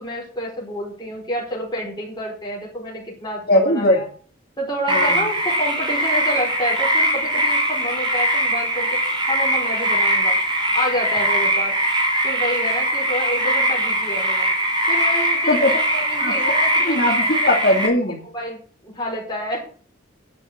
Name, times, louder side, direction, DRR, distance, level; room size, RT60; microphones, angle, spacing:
voice 1, 0.0-4.1 4.6-10.4 10.7-11.7 12.2-14.5 14.9-15.6 15.9-17.0 17.4-17.8 18.3-19.6, left 1 dB, 20° left, -4 dB, 4.5 m, -29 dB
voice 2, 3.5-4.0 4.9-5.3 15.5-15.7 16.2-16.3 16.8-18.2, left 1 dB, 50° left, 1 dB, 3.1 m, -19 dB
sound 1, 4.9-17.9, right 1 dB, 25° right, 2.9 m, -21 dB
9.7 x 6.9 x 8.6 m, 0.43 s
head